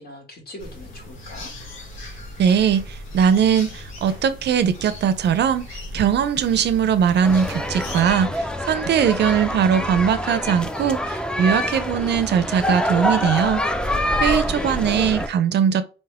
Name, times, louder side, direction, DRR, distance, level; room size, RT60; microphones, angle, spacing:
voice 1, 0.0-1.5 14.4-15.2, left 2 dB, 50° left, 2.1 m, -40 dB
sound 1, 0.6-8.0, left 1 dB, 85° left, 1.6 m, -38 dB
voice 2, 2.4-13.6 14.2-15.8, right 8 dB, 60° right, 0.5 m, -20 dB
sound 2, 7.2-15.3, left 1 dB, 5° left, 0.5 m, -25 dB
4.1 x 3.4 x 3.5 m
cardioid pair, 90°, 20 cm